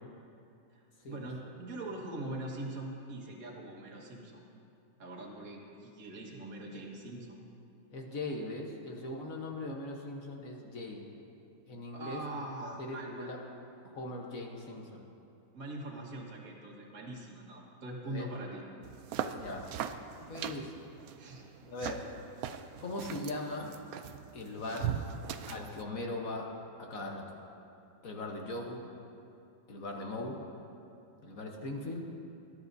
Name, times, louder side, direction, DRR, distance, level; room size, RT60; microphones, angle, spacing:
voice 1, 0.7-4.4 5.0-7.4 11.9-13.3 15.5-18.6 21.2-21.5, right 1 dB, 50° right, -2 dB, 1.9 m, -42 dB
voice 2, 7.9-11.0 11.7-12.2 12.6-13.4 13.8-15.0 18.1-18.3 19.3-19.7 20.1-20.8 21.7-22.1 22.8-23.8 24.3-25.0 25.5-26.5 26.8-27.4 28.0-28.8 29.7-30.4 31.2-32.1, left 2 dB, 50° left, 1 dB, 1.4 m, -40 dB
sound 1, 18.8-25.8, right 9 dB, 75° right, 0.8 m, -40 dB
20.5 x 11.5 x 2.7 m, 2.7 s
omnidirectional pair, 2.0 m